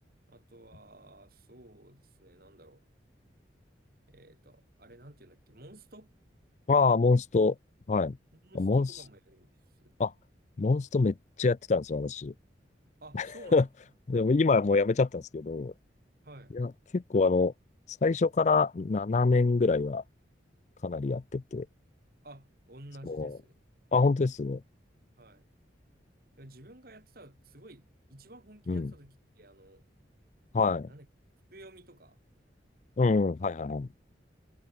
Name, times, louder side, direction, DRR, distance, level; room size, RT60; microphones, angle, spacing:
voice 1, 0.3-2.8 4.1-6.1 8.3-10.0 13.0-13.9 16.2-16.6 22.2-23.6 25.2-25.5 26.4-29.9 30.9-31.1 31.5-32.2, right 1 dB, 55° right, 4.0 m, -53 dB
voice 2, 6.7-7.6 7.9-8.2 8.5-8.9 10.0-10.1 10.6-12.3 13.1-13.3 13.5-13.6 14.1-15.7 16.5-17.5 18.0-20.0 20.8-21.7 23.1-23.3 23.9-24.6 28.7-28.9 30.5-30.9 33.0-33.9, left 4 dB, 40° left, 0.4 m, -25 dB
head